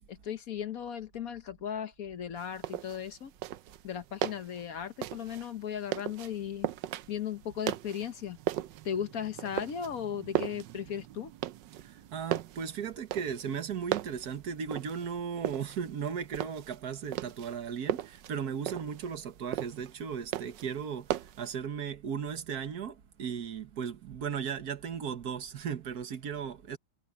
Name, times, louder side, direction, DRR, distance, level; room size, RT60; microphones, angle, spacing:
voice 1, 0.1-3.3 3.8-6.7 7.1-8.4 8.8-11.3, left 8 dB, 55° left, 1.1 m, -36 dB
sound 1, 2.4-21.5, right 13 dB, 70° right, 1.2 m, -38 dB
voice 2, 11.8-26.8, right 7 dB, 50° right, 1.6 m, -36 dB
omnidirectional pair, 2.3 m